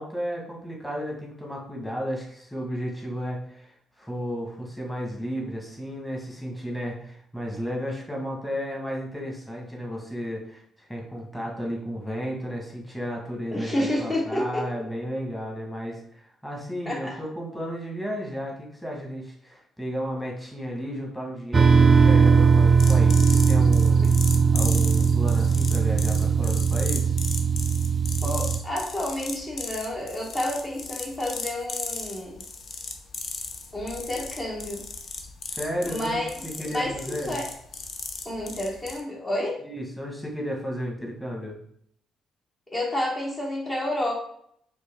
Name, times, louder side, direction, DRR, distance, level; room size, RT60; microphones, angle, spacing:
voice 1, 0.0-10.6 10.9-27.2 35.5-37.4 39.6-41.6, equal, 5° left, -2 dB, 1.5 m, -33 dB
voice 2, 13.5-14.6 16.8-17.2 24.0-24.1 28.2-32.4 33.7-34.8 35.8-36.3 36.6-37.5 38.2-39.6 42.7-44.1, left 1 dB, 30° left, -4 dB, 1.3 m, -30 dB
sound 1, 21.5-28.6, right 5 dB, 40° right, 0.4 m, -19 dB
sound 2, 22.8-39.0, left 4 dB, 55° left, 0.6 m, -37 dB
4.3 x 2.6 x 3.5 m, 0.67 s
hypercardioid pair, 50°, 0 cm